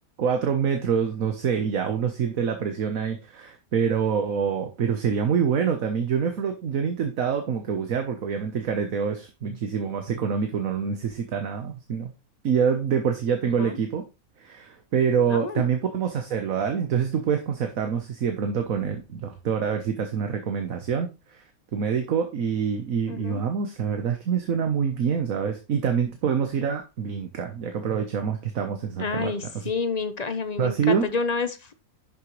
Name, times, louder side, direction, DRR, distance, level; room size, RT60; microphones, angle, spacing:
voice 1, 0.2-12.1 12.4-14.0 14.4-21.4 21.7-29.7 30.6-31.1, right 7 dB, 65° right, 5 dB, 1.4 m, -26 dB
voice 2, 15.3-15.6 23.1-23.4 29.0-31.7, left 4 dB, 35° left, 10 dB, 0.8 m, -29 dB
11.0 x 6.9 x 3.2 m, 0.27 s
omnidirectional pair, 1.6 m